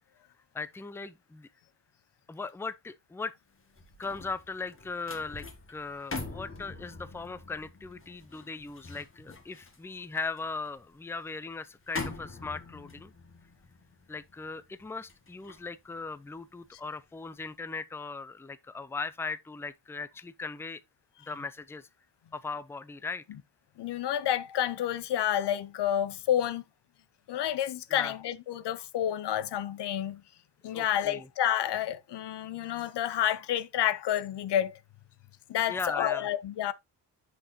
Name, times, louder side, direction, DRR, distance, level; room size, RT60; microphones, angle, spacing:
voice 1, 0.5-1.5 2.3-3.3 4.0-13.1 14.1-20.8 21.3-21.9 22.3-23.2 27.9-28.1 30.7-31.3 35.7-36.3, left 4 dB, 5° left, 0.4 m, -38 dB
sound 1, 3.5-16.8 17.2-17.5, left 3 dB, 30° left, 1.7 m, -44 dB
voice 2, 23.8-26.6 27.3-30.2 30.6-34.8 35.5-36.7, left 11 dB, 90° left, 0.7 m, -29 dB
8.0 x 6.1 x 2.8 m
wide cardioid pair, 120°, 40 cm